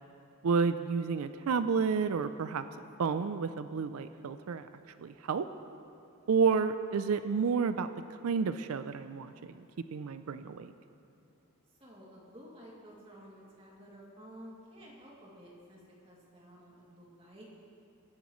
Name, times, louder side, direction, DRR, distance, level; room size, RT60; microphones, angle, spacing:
voice 1, 0.4-2.6 3.0-4.7 5.0-5.5 6.3-7.9 8.2-9.6 9.9-10.7, right 5 dB, 70° right, 11 dB, 0.4 m, -30 dB
voice 2, 11.8-17.5, equal, 25° right, -4 dB, 2.5 m, -52 dB
22.0 x 10.5 x 3.1 m, 2.8 s
head